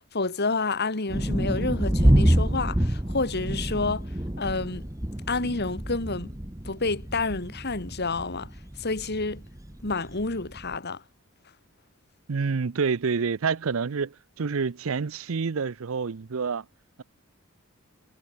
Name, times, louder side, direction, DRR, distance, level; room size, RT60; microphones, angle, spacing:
voice 1, 0.1-4.1 4.4-4.8 5.3-6.3 6.6-8.5 8.8-9.4 9.8-11.0, left 3 dB, 50° left, 2.1 m, -29 dB
sound 1, 1.1-10.8, equal, 15° right, 1.4 m, -27 dB
voice 2, 12.3-16.6, right 5 dB, 70° right, 0.6 m, -28 dB
head